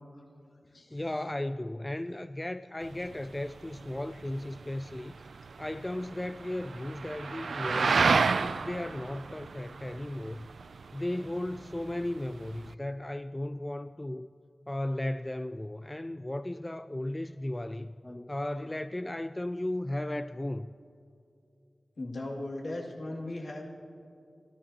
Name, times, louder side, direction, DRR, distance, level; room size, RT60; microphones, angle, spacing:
voice 1, 0.9-5.1 5.6-10.5 10.9-14.3 14.7-20.7, left 1 dB, 20° left, 11 dB, 0.3 m, -35 dB
sound 1, 2.8-12.7, right 4 dB, 80° right, 0.3 m, -32 dB
voice 2, 22.0-23.6, left 2 dB, 70° left, -2 dB, 2.3 m, -37 dB
25.0 x 14.0 x 2.9 m, 2.6 s
cardioid pair, 45°, 0 cm